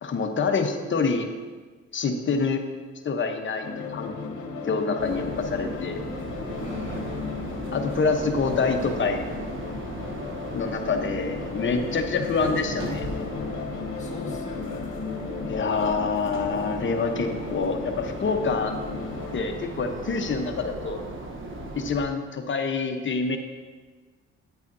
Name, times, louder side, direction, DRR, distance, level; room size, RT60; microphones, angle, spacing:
voice 1, 0.0-1.3 1.9-2.6 3.0-4.1 4.7-6.0 7.7-9.2 10.5-13.1 15.4-18.7 19.3-21.0 21.7-23.4, left 4 dB, 40° left, 5 dB, 0.9 m, -26 dB
sound 1, 3.6-19.4, left 5 dB, 75° left, 1.0 m, -35 dB
sound 2, 5.0-22.0, right 2 dB, 40° right, 1.0 m, -36 dB
voice 2, 6.6-7.4 11.9-12.0 13.9-15.1, left 2 dB, 25° left, -3 dB, 1.8 m, -43 dB
9.6 x 8.1 x 2.6 m, 1.4 s
cardioid pair, 90°, 30 cm